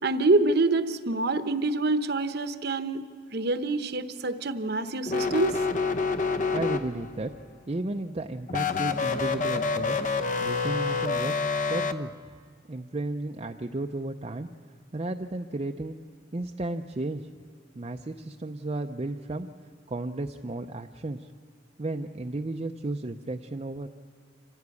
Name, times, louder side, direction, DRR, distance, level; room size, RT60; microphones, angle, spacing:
voice 1, 0.0-3.0 3.3-5.6, right 3 dB, 55° right, 10 dB, 0.9 m, -26 dB
sound 1, 5.1-7.2 8.5-11.9, left 4 dB, 40° left, 0.8 m, -27 dB
voice 2, 6.5-7.3 7.7-10.0 10.4-12.1 12.7-14.5 14.9-16.0 16.3-17.3 17.7-19.5 19.9-21.3 21.8-23.9, right 2 dB, 30° right, 4 dB, 0.6 m, -33 dB
26.5 x 15.5 x 8.4 m, 2.1 s
head